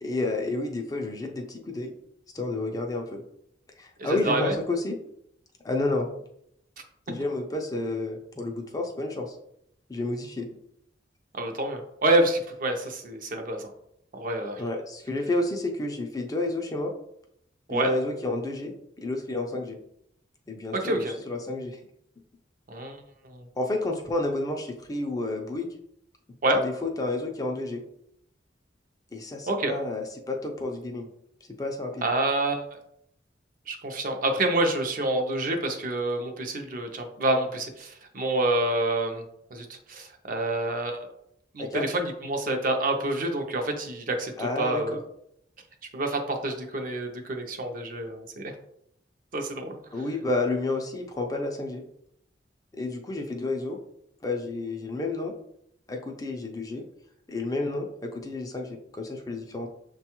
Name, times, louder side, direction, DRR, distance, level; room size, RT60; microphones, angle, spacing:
voice 1, 0.0-1.9 2.3-3.2 3.8-5.0 5.6-6.1 7.1-9.4 9.9-10.5 14.6-16.9 17.7-19.8 20.5-21.8 23.6-25.7 26.5-27.8 29.1-31.1 31.6-32.0 41.6-41.9 44.4-44.8 49.9-51.8 52.7-53.8 54.2-55.3 55.9-56.8 57.3-59.7, left 2 dB, 20° left, 2 dB, 0.4 m, -30 dB
voice 2, 4.0-4.5 11.3-13.7 14.1-14.6 17.7-17.9 20.7-21.1 22.7-23.0 23.3-23.4 26.4-26.6 29.5-29.7 32.0-32.6 33.7-39.2 39.5-41.1 41.5-45.0 45.9-48.5 49.3-49.8, right 2 dB, 50° right, 4 dB, 0.6 m, -27 dB
6.1 x 2.3 x 2.9 m, 0.74 s
head